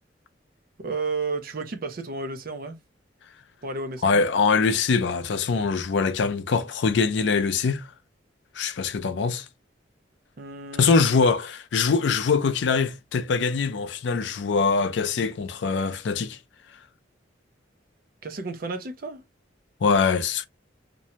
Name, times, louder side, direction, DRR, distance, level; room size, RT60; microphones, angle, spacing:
voice 1, 0.8-2.8 3.6-4.2 10.4-11.2 18.2-19.2, right 3 dB, 50° right, 0.5 m, -32 dB
voice 2, 4.0-7.9 8.6-9.5 10.8-16.4 19.8-20.5, left 4 dB, 75° left, 0.4 m, -23 dB
2.5 x 2.1 x 2.8 m
head